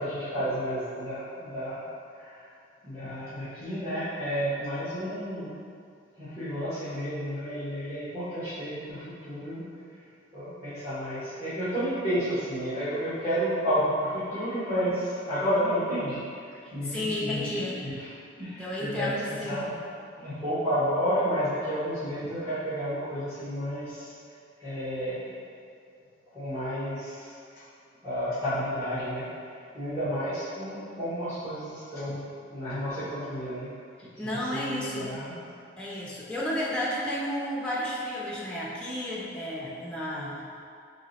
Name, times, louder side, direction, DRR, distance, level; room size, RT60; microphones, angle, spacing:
voice 1, 0.0-1.8 2.2-2.5 2.8-5.5 6.2-9.6 10.3-18.1 18.4-19.7 20.2-24.1 24.6-25.3 26.3-27.3 28.0-29.3 29.7-32.2 32.5-33.7 34.2-35.4, equal, 25° right, -18 dB, 1.3 m, -31 dB
voice 2, 16.8-17.8 18.6-19.6 34.0-35.1 35.8-40.7, left 1 dB, 5° left, -6 dB, 0.4 m, -32 dB
3.0 x 2.9 x 4.0 m, 2.4 s
head